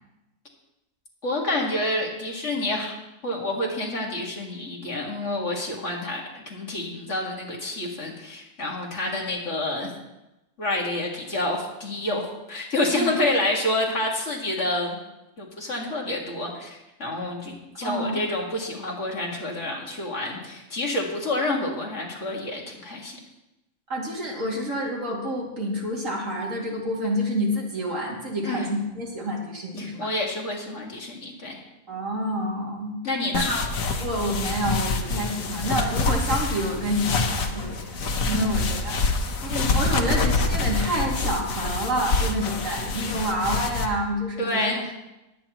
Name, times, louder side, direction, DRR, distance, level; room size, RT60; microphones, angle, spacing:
voice 1, 1.2-9.9 10.6-15.0 15.4-23.2 28.4-28.7 29.8-31.6 33.0-33.5 38.3-38.8 44.4-44.8, left 1 dB, 55° left, -2 dB, 2.3 m, -28 dB
voice 2, 17.8-18.2 23.9-30.1 31.9-33.0 33.3-33.6 34.0-37.9 38.3-39.0 39.4-44.7, equal, 65° right, -3 dB, 2.9 m, -28 dB
sound 1, 33.3-43.9, left 3 dB, 70° left, 1.4 m, -26 dB
20.0 x 8.9 x 3.0 m, 0.97 s
omnidirectional pair, 1.5 m